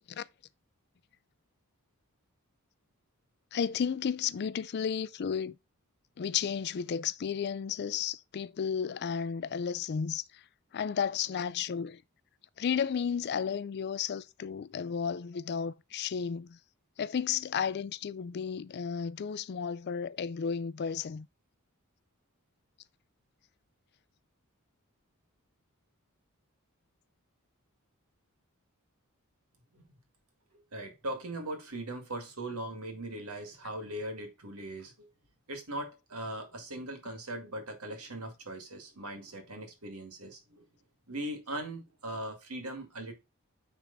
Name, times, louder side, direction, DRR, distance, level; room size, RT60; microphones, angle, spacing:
voice 1, 3.5-5.6 6.2-10.4 10.7-12.0 12.6-16.6 17.0-21.3, left 7 dB, 50° left, 0.4 m, -33 dB
voice 2, 30.7-35.1 35.5-40.7 41.1-43.1, right 1 dB, 80° right, 2.1 m, -40 dB
9.1 x 3.6 x 4.0 m
head